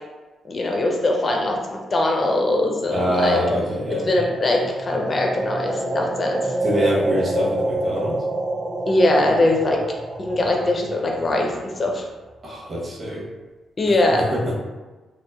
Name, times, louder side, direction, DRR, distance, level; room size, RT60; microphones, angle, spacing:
voice 1, 0.5-3.4 4.1-6.5 8.9-9.8 10.2-12.0 13.8-14.2, left 2 dB, 40° left, 0 dB, 0.5 m, -21 dB
voice 2, 2.9-4.2 6.6-8.2 12.4-13.2 14.1-14.5, equal, 45° right, -6 dB, 0.9 m, -24 dB
sound 1, 4.0-12.0, right 2 dB, 25° right, 0.3 m, -28 dB
3.0 x 2.0 x 2.3 m, 1.2 s
supercardioid pair, 55°, 0 cm